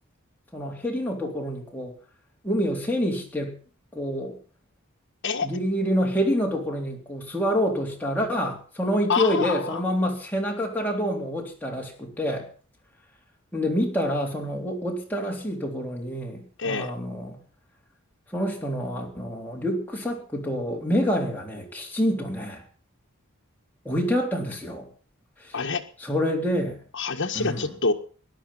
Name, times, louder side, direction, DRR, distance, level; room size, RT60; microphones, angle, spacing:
voice 1, 0.5-1.9 2.4-3.6 3.9-4.4 5.4-12.5 13.5-17.4 18.3-22.6 23.9-24.9 25.4-25.6 26.0-26.8 27.3-27.6, equal, 10° left, -1 dB, 3.6 m, -27 dB
voice 2, 9.1-9.8 16.6-16.9 25.5-25.8 26.9-27.9, left 4 dB, 55° left, 3 dB, 1.7 m, -26 dB
18.0 x 11.0 x 5.7 m, 0.40 s
head